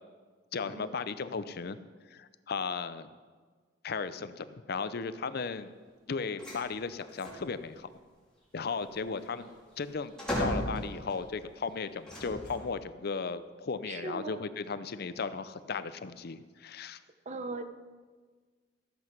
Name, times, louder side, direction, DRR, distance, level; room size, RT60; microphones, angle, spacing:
voice 1, 0.5-1.8 2.1-3.1 3.8-5.7 6.1-7.9 8.5-9.5 9.8-10.1 10.4-17.0, left 5 dB, 55° left, 13 dB, 0.6 m, -36 dB
sound 1, 6.4-6.6 7.0-7.5 8.9-11.3 12.0-12.8, equal, 5° left, 3.9 m, -36 dB
voice 2, 13.8-14.4 17.3-17.6, right 3 dB, 40° right, 9 dB, 0.8 m, -39 dB
14.5 x 7.8 x 6.0 m, 1.5 s
head